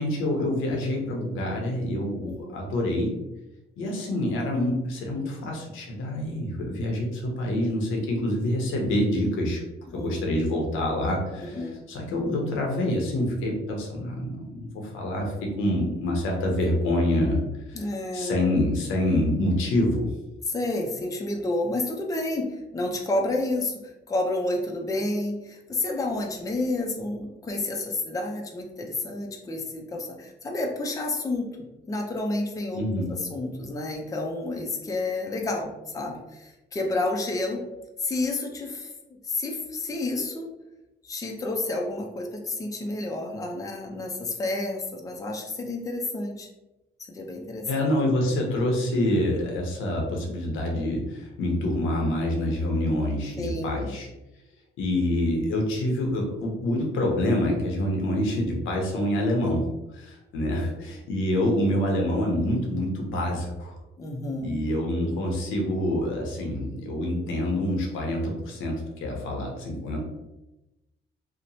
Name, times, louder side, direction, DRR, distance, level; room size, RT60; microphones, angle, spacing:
voice 1, 0.0-3.1 3.8-9.6 10.0-11.6 11.9-17.4 17.7-17.8 18.1-20.1 32.7-33.1 47.7-54.1 54.8-59.7 59.9-63.8 64.4-70.0, left 1 dB, 90° left, 0 dB, 0.7 m, -26 dB
voice 2, 9.9-10.3 11.4-11.8 17.7-18.4 20.5-23.7 24.1-37.6 38.0-40.5 41.0-46.5 47.1-47.7 53.4-53.9 60.6-60.9 64.0-64.5, left 2 dB, 15° left, 2 dB, 0.4 m, -30 dB
2.9 x 2.1 x 2.6 m, 0.99 s
cardioid pair, 90°, 20 cm